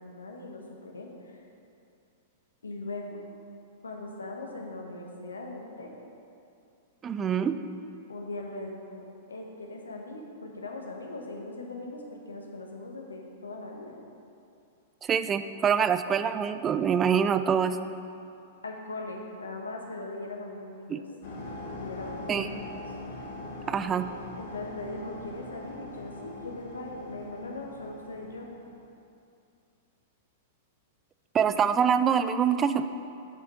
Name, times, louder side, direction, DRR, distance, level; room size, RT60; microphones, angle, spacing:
voice 1, 0.0-1.4 2.6-3.2 3.8-5.9 8.1-13.9 18.6-21.1 21.7-22.8 24.4-28.5, left 2 dB, 75° left, 1 dB, 1.3 m, -40 dB
voice 2, 7.0-7.6 15.0-17.8 20.9-21.0 22.3-22.5 23.7-24.1 31.3-32.8, right 7 dB, 20° right, 11 dB, 0.4 m, -25 dB
sound 1, 21.2-28.8, left 2 dB, 60° left, 2.2 m, -42 dB
7.7 x 6.2 x 6.0 m, 2.5 s
figure-of-eight pair, 100°, 0 cm